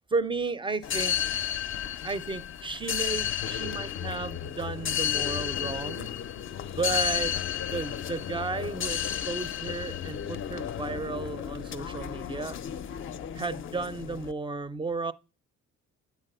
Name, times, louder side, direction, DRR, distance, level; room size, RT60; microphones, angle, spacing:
voice 1, 0.1-1.3 2.0-6.1 6.7-7.3 7.6-12.6 13.3-15.1, right 3 dB, 15° right, 0.4 m, -33 dB
sound 1, 0.8-14.3, left 10 dB, 45° left, 0.4 m, -32 dB
8.5 x 4.1 x 6.6 m
cardioid pair, 90°, 30 cm